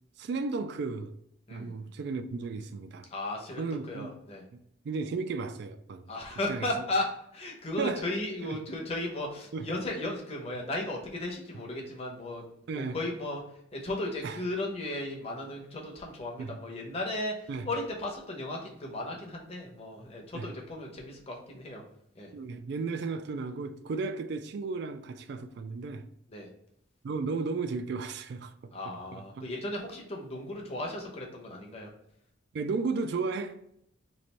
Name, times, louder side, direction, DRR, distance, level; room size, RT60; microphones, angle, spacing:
voice 1, 0.2-1.2 1.5-3.1 3.6-4.1 4.5-4.6 4.8-6.1 6.5-6.7 7.8-8.1 8.4-8.6 9.5-9.7 12.7-13.0 14.2-14.4 16.4-16.5 17.5-17.7 20.3-20.5 22.3-26.1 27.0-28.7 29.1-29.5 32.5-33.6, right 4 dB, 55° right, 0.3 m, -34 dB
voice 2, 3.1-4.4 6.1-12.5 12.7-13.4 13.7-21.8 22.1-22.3 26.3-26.5 28.7-31.9, left 1 dB, 30° left, 0.8 m, -35 dB
3.1 x 2.5 x 4.2 m
head